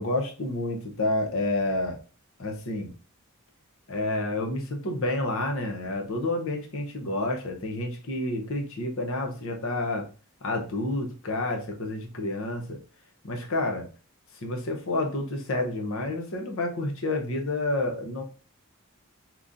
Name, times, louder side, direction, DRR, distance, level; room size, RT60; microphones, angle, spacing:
voice 1, 0.0-2.0 2.4-2.9 3.9-10.1 10.4-12.8 13.2-13.9 14.4-18.2, left 2 dB, 65° left, 3 dB, 0.8 m, -29 dB
3.7 x 3.0 x 2.5 m, 0.36 s
head